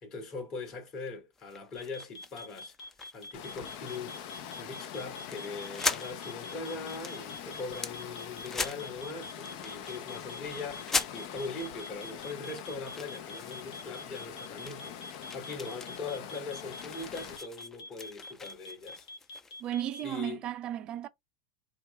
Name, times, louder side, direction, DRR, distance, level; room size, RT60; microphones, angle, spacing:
voice 1, 0.0-2.8 3.1-4.2 4.6-19.1 20.0-20.4, left 3 dB, 40° left, 2.4 m, -41 dB
sound 1, 1.4-3.9 4.2-4.4 4.8-4.9 5.2-6.1 6.5-7.9 8.4-9.0 9.4-10.2 10.8-11.6 12.2-14.3 14.6-19.7, left 3 dB, 15° left, 0.5 m, -40 dB
sound 2, 1.8-20.0, left 1 dB, 75° left, 1.4 m, -45 dB
Water, 3.3-17.4, left 9 dB, 60° left, 0.8 m, -44 dB
voice 2, 19.6-21.1, right 11 dB, 40° right, 0.4 m, -34 dB
4.5 x 2.4 x 3.3 m
supercardioid pair, 120°, 2 cm